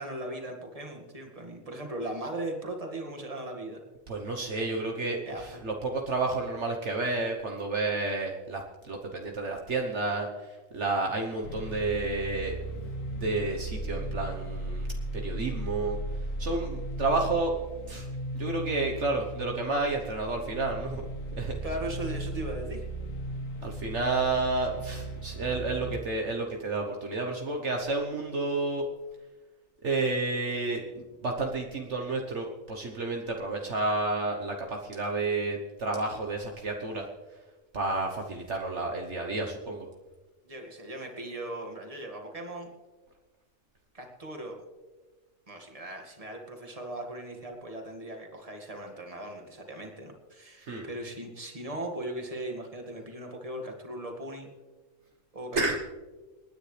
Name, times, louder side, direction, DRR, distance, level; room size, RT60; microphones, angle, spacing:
voice 1, 0.0-3.8 5.3-5.5 16.9-17.1 21.6-22.8 40.4-42.7 43.9-44.6 45.5-54.5 55.3-55.8, right 1 dB, 25° right, 2 dB, 2.1 m, -38 dB
voice 2, 4.1-10.3 10.7-12.6 13.1-14.9 15.1-16.0 16.4-17.5 17.9-18.1 18.3-21.0 21.4-21.6 23.6-28.9 29.8-37.1 37.7-39.9 50.7-50.9 55.5-55.8, right 3 dB, 60° right, 1 dB, 1.4 m, -30 dB
sound 1, 11.4-26.0, right 1 dB, 80° left, 1.6 m, -36 dB
28.5 x 9.8 x 3.3 m, 1.3 s
omnidirectional pair, 1.3 m